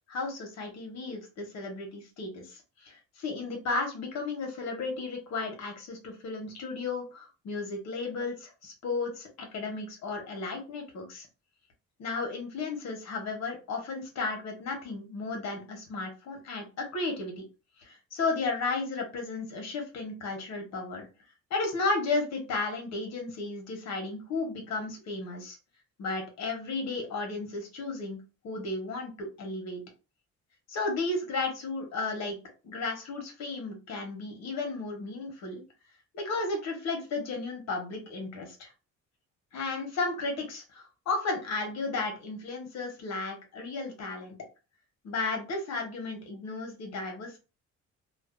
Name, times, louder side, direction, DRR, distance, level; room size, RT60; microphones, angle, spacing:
voice 1, 0.1-11.3 12.0-17.4 17.8-21.1 21.5-25.6 26.0-29.8 30.7-32.4 32.6-35.6 36.1-38.7 39.5-44.3 45.0-47.4, left 3 dB, 60° left, 2 dB, 0.9 m, -34 dB
2.4 x 2.1 x 2.5 m, 0.31 s
cardioid pair, 135°, 30 cm